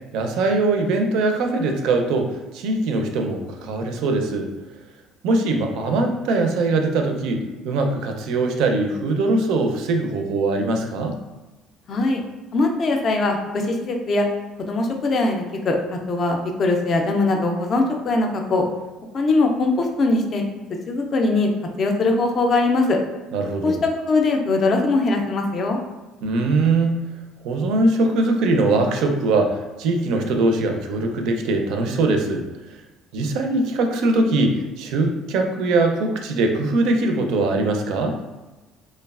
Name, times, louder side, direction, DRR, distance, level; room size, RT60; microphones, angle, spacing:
voice 1, 0.1-4.5 5.2-11.2 23.3-23.8 26.2-27.0 27.4-32.5 33.1-38.2, right 2 dB, 65° right, 4 dB, 0.4 m, -21 dB
voice 2, 11.9-12.2 12.5-14.3 14.6-15.8 16.1-18.7 19.1-20.4 20.7-21.5 21.8-23.0 23.6-23.8 24.1-25.8, left 2 dB, 30° left, 3 dB, 0.3 m, -21 dB
3.1 x 2.3 x 2.3 m, 1.1 s
cardioid pair, 170°, 0 cm